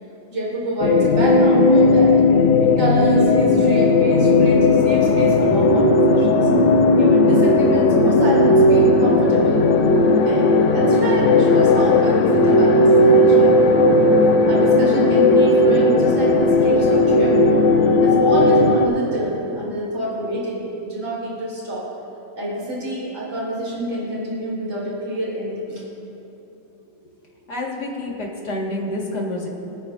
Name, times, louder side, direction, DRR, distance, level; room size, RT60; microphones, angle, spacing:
voice 1, 0.3-2.1 2.6-6.5 7.0-9.7 10.2-13.8 14.5-17.6 18.0-21.8 22.4-25.8, right 1 dB, 65° right, -6 dB, 3.8 m, -27 dB
sound 1, 0.8-18.9, left 2 dB, 70° left, 1.5 m, -15 dB
voice 2, 27.5-29.5, left 1 dB, 55° left, -3 dB, 2.1 m, -28 dB
25.0 x 9.2 x 2.5 m, 3.0 s
omnidirectional pair, 2.2 m